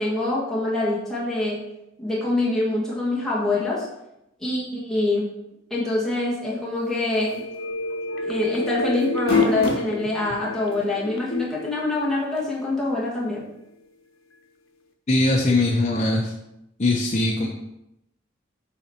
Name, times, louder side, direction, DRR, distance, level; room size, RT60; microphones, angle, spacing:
voice 1, 0.0-1.6 2.0-3.9 4.4-5.3 5.7-7.4 8.2-13.4, left 2 dB, ahead, -8 dB, 1.5 m, -25 dB
sound 1, 7.1-12.8 13.2-13.3, left 3 dB, 80° left, 0.9 m, -29 dB
sound 2, 7.3-7.5 7.9-8.0 9.0-9.9 10.7-10.8 12.4-12.5, left 1 dB, 50° left, 2.3 m, -26 dB
voice 2, 15.1-16.3 16.8-17.5, left 2 dB, 35° left, -1 dB, 0.7 m, -21 dB
7.3 x 4.0 x 4.4 m, 0.86 s
head